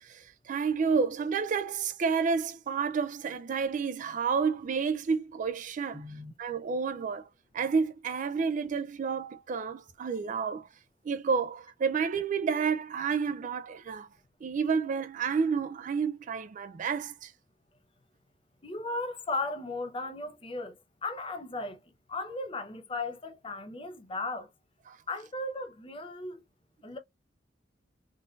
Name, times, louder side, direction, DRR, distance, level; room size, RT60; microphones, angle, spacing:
voice 1, 0.0-6.0 6.4-7.3 7.5-10.7 11.1-14.1 14.4-17.3 24.9-25.0, right 5 dB, 45° right, 0.3 m, -30 dB
voice 2, 5.9-6.3 18.6-21.8 22.1-24.5 25.1-26.4 26.8-27.0, left 2 dB, 30° left, 0.7 m, -36 dB
3.6 x 2.6 x 2.4 m
head